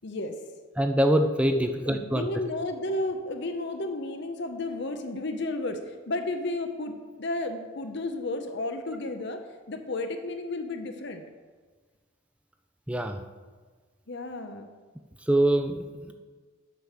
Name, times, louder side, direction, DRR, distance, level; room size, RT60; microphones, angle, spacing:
voice 1, 0.0-0.4 1.5-9.4 9.7-11.3 14.1-14.7, left 2 dB, 55° left, 6 dB, 0.8 m, -32 dB
voice 2, 0.8-2.3 12.9-13.2 15.3-16.1, right 1 dB, 5° right, 6 dB, 0.4 m, -24 dB
8.1 x 5.9 x 6.7 m, 1.4 s
head